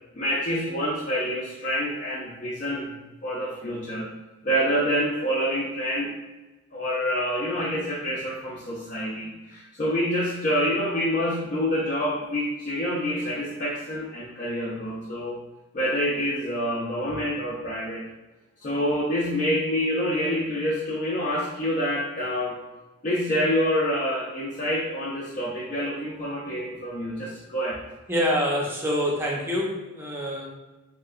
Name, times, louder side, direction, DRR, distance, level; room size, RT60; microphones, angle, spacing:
voice 1, 0.1-2.9 3.2-4.1 4.4-6.1 6.7-15.4 15.7-18.0 18.6-22.6 23.0-27.8, equal, 40° left, -6 dB, 0.5 m, -27 dB
voice 2, 28.1-30.5, equal, 10° right, -3 dB, 0.5 m, -26 dB
3.3 x 2.8 x 2.4 m, 1.1 s
head